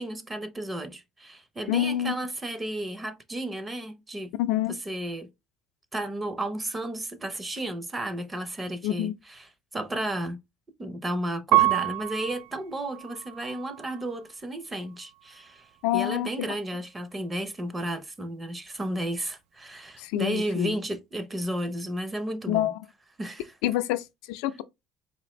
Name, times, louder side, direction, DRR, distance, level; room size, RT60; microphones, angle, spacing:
voice 1, 0.0-4.3 4.7-5.3 5.9-9.5 9.7-10.4 10.8-22.7 23.2-23.5, right 1 dB, 15° right, 0.6 m, -33 dB
voice 2, 1.7-2.2 4.4-4.8 8.8-9.1 15.8-16.5 20.0-20.7 22.5-22.8 23.6-24.6, left 13 dB, 85° left, 0.4 m, -27 dB
Piano, 11.5-14.3 14.9-15.6, right 16 dB, 70° right, 0.3 m, -28 dB
4.2 x 2.5 x 3.0 m
cardioid pair, 130°, 0 cm